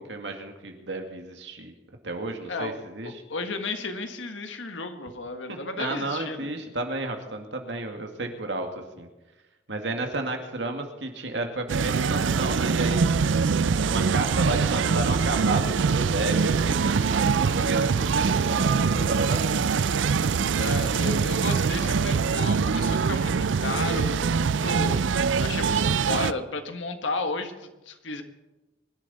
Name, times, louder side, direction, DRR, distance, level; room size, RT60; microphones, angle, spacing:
voice 1, 0.0-1.7 2.0-3.1 5.5-9.1 9.7-13.2 13.7-19.7, right 2 dB, 70° right, 4 dB, 2.1 m, -32 dB
voice 2, 3.0-6.5 20.5-28.2, left 3 dB, 90° left, 7 dB, 1.6 m, -33 dB
sound 1, 11.7-26.3, right 5 dB, 85° right, 0.5 m, -23 dB
24.0 x 11.0 x 4.2 m, 1.1 s
head